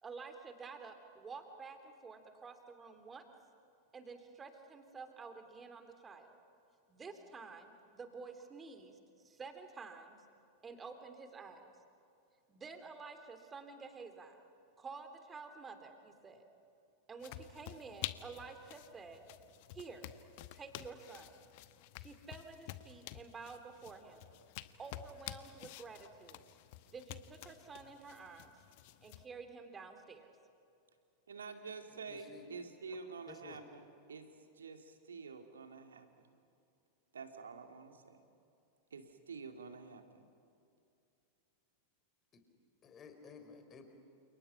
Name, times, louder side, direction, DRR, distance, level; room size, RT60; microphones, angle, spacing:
voice 1, 0.0-3.3 3.9-6.4 6.9-9.0 9.2-10.2 10.6-11.7 12.5-14.4 14.8-16.4 17.1-19.2 19.7-20.1 20.5-21.4 21.9-24.3 24.8-26.5 26.9-28.5 29.0-30.3, right 4 dB, 20° right, 7 dB, 3.1 m, -50 dB
sound 1, 17.2-29.2, left 16 dB, 50° left, 1.0 m, -50 dB
voice 2, 31.3-34.3 34.6-36.3 37.1-38.2 38.9-40.2, right 5 dB, 70° right, 6 dB, 2.5 m, -48 dB
voice 3, 32.1-32.5 33.3-33.6 42.8-43.9, left 6 dB, 25° left, 6 dB, 4.2 m, -54 dB
30.0 x 28.5 x 5.8 m, 2.6 s
figure-of-eight pair, 90°, 0 cm